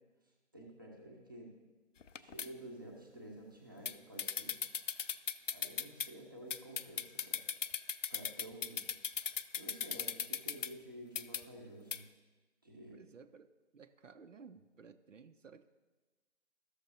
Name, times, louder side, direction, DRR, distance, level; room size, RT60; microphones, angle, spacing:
voice 1, 0.5-1.5 2.2-4.5 5.5-7.4 8.1-8.8 9.5-12.0 12.6-13.0, right 1 dB, 15° right, -3 dB, 0.7 m, -51 dB
sound 1, 2.0-2.5 3.9-6.1 6.5-10.7 11.2-11.4 11.9-12.0, left 7 dB, 80° left, 0.5 m, -38 dB
voice 2, 12.9-15.7, right 5 dB, 75° right, 9 dB, 0.6 m, -56 dB
14.5 x 6.5 x 2.6 m, 1.3 s
figure-of-eight pair, 160°, 37 cm